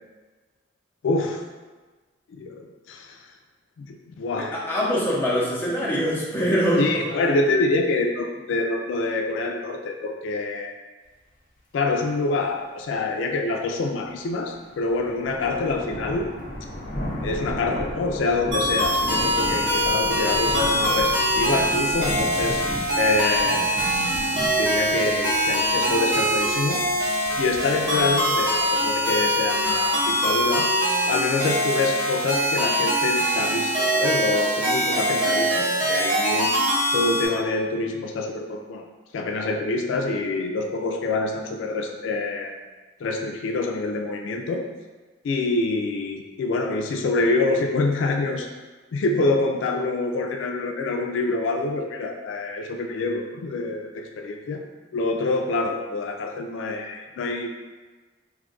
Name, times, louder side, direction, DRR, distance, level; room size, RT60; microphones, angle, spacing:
voice 1, 1.0-1.4 2.3-3.2 3.8-4.5 6.8-10.7 11.7-16.3 17.2-22.6 22.9-24.2 24.4-26.8 27.4-30.7 31.1-36.5 36.9-38.9 39.1-42.5 43.0-44.6 45.2-48.5 48.9-54.6 54.9-57.5, left 3 dB, 85° left, 3 dB, 0.3 m, -26 dB
voice 2, 4.3-7.1, equal, 10° left, -8 dB, 0.7 m, -23 dB
sound 1, 14.5-30.4, equal, 45° left, 0.6 m, -35 dB
sound 2, 18.5-37.3, equal, 80° right, 0.9 m, -23 dB
2.6 x 2.3 x 3.7 m, 1.3 s
head